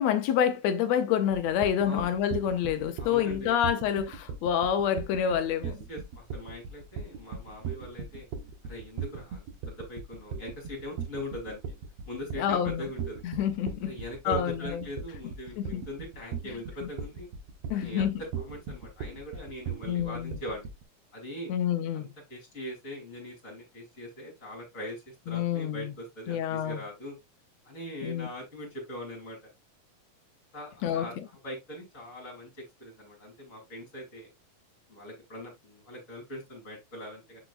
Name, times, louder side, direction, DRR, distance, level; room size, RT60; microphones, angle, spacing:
voice 1, 0.0-5.8 12.4-12.8 13.2-13.9 14.3-14.8 15.6-15.8 17.7-18.2 19.9-20.4 21.5-22.1 25.3-25.9 26.3-26.8 28.0-28.3 30.8-31.1, left 9 dB, 75° left, 1.7 m, -27 dB
sound 1, 1.3-20.8, right 6 dB, 65° right, 2.1 m, -38 dB
voice 2, 3.0-3.7 5.6-8.3 8.6-11.6 12.1-13.2 13.8-17.3 17.7-20.7 21.1-27.2 27.6-29.4 30.5-34.3 34.9-37.4, equal, 25° left, 2.8 m, -41 dB
7.3 x 6.2 x 2.4 m
omnidirectional pair, 3.5 m